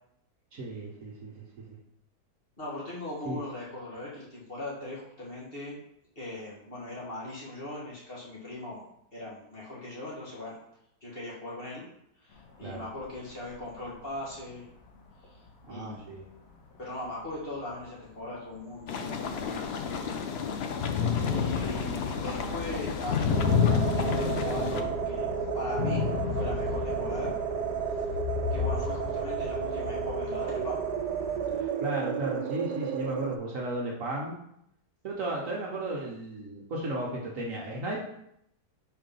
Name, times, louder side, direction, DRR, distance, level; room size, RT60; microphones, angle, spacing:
voice 1, 0.5-1.8 3.2-3.4 12.6-12.9 15.7-16.2 20.3-20.5 31.5-34.4 35.0-38.0, right 2 dB, 55° right, -2 dB, 1.3 m, -35 dB
voice 2, 2.6-5.8 6.2-8.8 9.1-10.6 11.0-11.8 12.2-14.7 15.3-15.4 15.7-16.1 16.8-19.7 21.3-25.3 25.5-27.4 28.5-30.8, left 1 dB, 35° left, -7 dB, 2.0 m, -39 dB
sound 1, 12.8-12.9 13.5-13.6 14.5-14.6 15.2-15.3 17.3-17.4 17.8-17.9 19.0-19.1 19.4-31.6, left 6 dB, 60° left, 1.2 m, -31 dB
sound 2, 18.9-24.8, left 6 dB, 80° left, 0.5 m, -34 dB
sound 3, 23.3-33.4, right 7 dB, 80° right, 1.2 m, -32 dB
4.8 x 4.0 x 5.3 m, 0.76 s
omnidirectional pair, 1.8 m